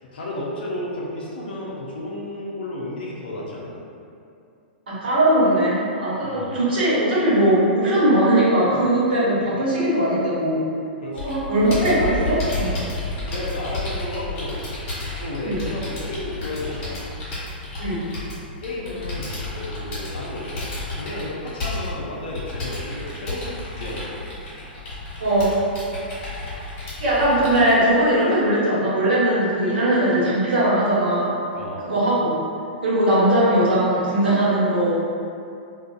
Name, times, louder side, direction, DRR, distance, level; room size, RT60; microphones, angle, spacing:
voice 1, 0.1-3.8 6.2-6.5 11.0-11.3 12.7-14.6 15.2-17.1 18.6-24.3 31.5-31.9, left 1 dB, 65° left, -4 dB, 0.5 m, -33 dB
voice 2, 4.9-10.6 11.2-12.7 15.4-15.6 17.8-18.0 25.2-25.5 26.5-26.6 27.0-31.3 31.8-32.4 32.8-34.9, right 1 dB, 75° right, -9 dB, 1.0 m, -19 dB
Computer keyboard, 11.2-27.7, left 2 dB, 40° left, 1.2 m, -32 dB
2.4 x 2.3 x 2.3 m, 2.5 s
hypercardioid pair, 115°, 6 cm